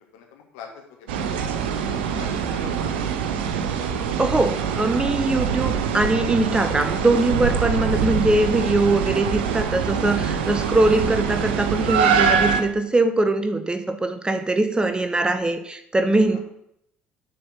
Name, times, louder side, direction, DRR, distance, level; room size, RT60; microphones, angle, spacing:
voice 1, 0.1-1.4 2.1-2.9 16.3-16.4, left 6 dB, 65° left, 2 dB, 1.6 m, -43 dB
sound 1, 1.1-12.6, right 7 dB, 70° right, 0.6 m, -24 dB
voice 2, 4.2-16.4, right 2 dB, 15° right, 9 dB, 0.8 m, -22 dB
7.2 x 4.5 x 6.0 m, 0.75 s
figure-of-eight pair, 55°, 6 cm